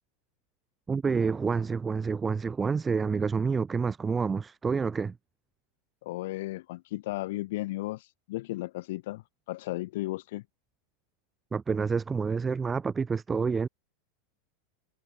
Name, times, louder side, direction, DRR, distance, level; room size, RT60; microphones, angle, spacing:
voice 1, 0.9-5.1 11.5-13.7, right 5 dB, 20° right, 3.2 m, -28 dB
voice 2, 6.0-9.2 9.5-10.4, left 18 dB, 70° left, 3.4 m, -34 dB
hypercardioid pair, 115°, 0 cm